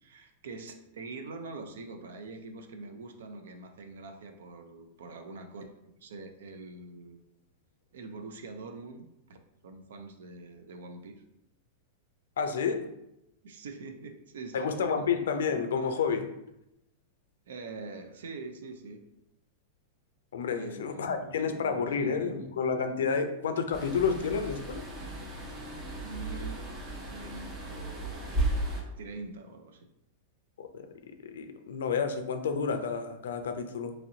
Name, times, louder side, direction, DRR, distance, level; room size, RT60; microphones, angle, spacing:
voice 1, 0.0-5.6 6.0-7.2 7.9-9.4 9.6-11.2 13.4-15.1 17.5-19.0 20.5-22.6 26.0-26.7 27.1-28.5 29.0-29.9, right 3 dB, 85° right, 6 dB, 0.4 m, -44 dB
voice 2, 12.4-12.9 14.5-16.3 20.3-24.8 30.6-30.7 31.2-33.9, left 6 dB, 90° left, 7 dB, 0.4 m, -30 dB
sound 1, 23.7-28.8, right 2 dB, 30° right, 0.7 m, -35 dB
3.0 x 2.6 x 2.8 m, 0.85 s
supercardioid pair, 135°, 0 cm